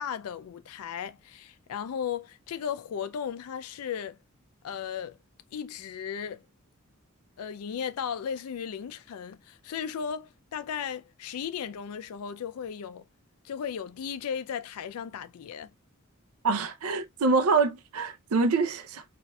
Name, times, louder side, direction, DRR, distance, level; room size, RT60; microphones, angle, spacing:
voice 1, 0.0-4.2 4.6-5.2 5.5-6.4 7.4-13.0 13.4-15.7, left 7 dB, 90° left, 0.4 m, -36 dB
voice 2, 16.4-19.0, right 4 dB, 80° right, 0.5 m, -25 dB
4.1 x 2.5 x 2.2 m
head